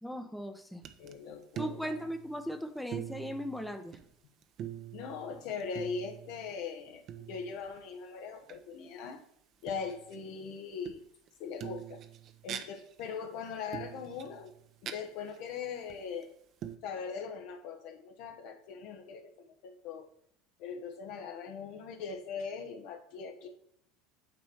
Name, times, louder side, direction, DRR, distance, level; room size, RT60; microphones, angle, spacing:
voice 1, 0.0-0.8 1.6-4.0, equal, 5° left, 7 dB, 0.7 m, -38 dB
sound 1, 0.8-1.1 1.4-2.6 2.9-4.1 4.4-6.5 7.1-7.8 8.4-8.6 9.6-10.3 10.8-11.3 11.6-13.1 13.7-14.9 15.3-15.4 15.9-16.2 16.6-16.8, right 10 dB, 50° right, 0.7 m, -44 dB
voice 2, 1.0-2.0 4.9-9.2 9.6-11.0 11.4-12.0 12.4-14.5 14.8-16.3 16.8-20.1 20.6-23.5, left 6 dB, 65° left, 4 dB, 1.1 m, -40 dB
8.6 x 3.0 x 6.2 m, 0.74 s
hypercardioid pair, 85°, 0 cm